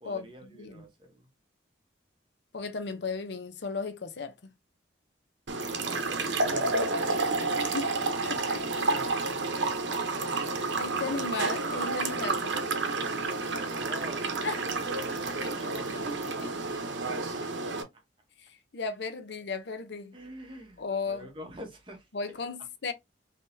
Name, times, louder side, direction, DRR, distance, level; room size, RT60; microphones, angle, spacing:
voice 1, 0.0-1.3 5.9-7.7 7.9-8.1 8.5-9.7 13.5-17.1 17.4-17.5 17.9-18.0 20.1-22.1, right 1 dB, 25° right, 1.0 m, -47 dB
voice 2, 2.5-4.5 7.7-7.9 8.2-8.7 10.8-12.6 14.4-14.6 15.4-15.8 16.2-16.5 17.4-17.5 18.4-20.2 20.8-21.3 22.1-22.9, left 4 dB, 65° left, 0.6 m, -35 dB
sound 1, 5.5-17.8, right 3 dB, 70° right, 0.8 m, -30 dB
3.7 x 2.9 x 2.6 m
head